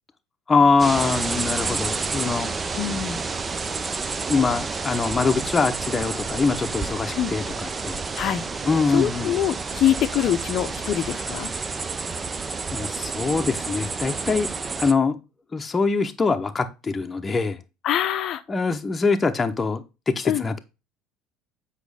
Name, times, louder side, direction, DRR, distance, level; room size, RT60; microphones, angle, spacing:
voice 1, 0.5-2.5 4.3-8.0 8.6-9.3 11.6-11.8 12.7-14.5 14.8-15.2 15.5-17.6 18.5-20.6, left 4 dB, 20° left, 0.8 m, -23 dB
sound 1, 0.8-14.9, right 4 dB, 25° right, 0.6 m, -30 dB
voice 2, 2.7-3.3 7.2-7.3 8.1-8.4 8.9-11.5 17.8-18.4 20.2-20.4, left 11 dB, 50° left, 0.6 m, -24 dB
8.1 x 4.9 x 3.4 m
figure-of-eight pair, 65°, 0 cm